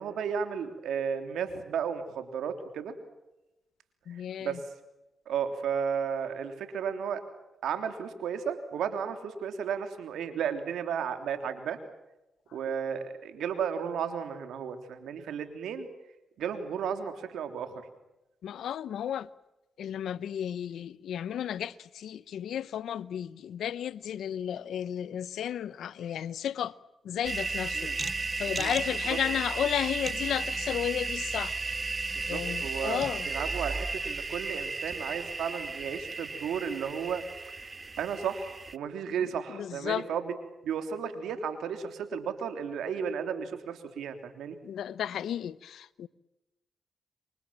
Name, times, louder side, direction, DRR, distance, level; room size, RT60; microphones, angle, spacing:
voice 1, 0.0-2.9 4.1-4.6 5.3-7.2 7.6-11.8 12.5-15.9 16.4-17.8 27.7-28.0 28.6-28.7 29.1-29.2 32.1-37.2 38.0-40.3 40.6-44.6, right 7 dB, 90° right, 3.3 m, -34 dB
voice 2, 4.1-4.6 18.4-19.3 19.8-26.7 27.0-27.9 28.4-31.6 32.3-33.3 39.5-40.1 44.6-46.1, left 10 dB, 85° left, 0.9 m, -33 dB
sound 1, 27.2-38.8, right 3 dB, 35° right, 0.9 m, -34 dB
28.5 x 24.5 x 7.6 m
cardioid pair, 65°, 0 cm